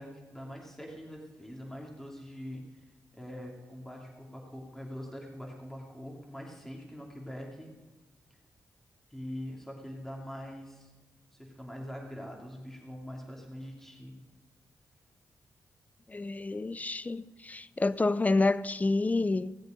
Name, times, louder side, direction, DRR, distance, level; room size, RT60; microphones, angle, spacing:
voice 1, 0.0-2.6 3.1-7.7 9.1-10.9 11.3-14.2, equal, 5° left, 2.7 m, -43 dB
voice 2, 16.1-19.6, left 3 dB, 25° left, 0.5 m, -28 dB
17.0 x 7.9 x 5.2 m
cardioid pair, 60°, 6 cm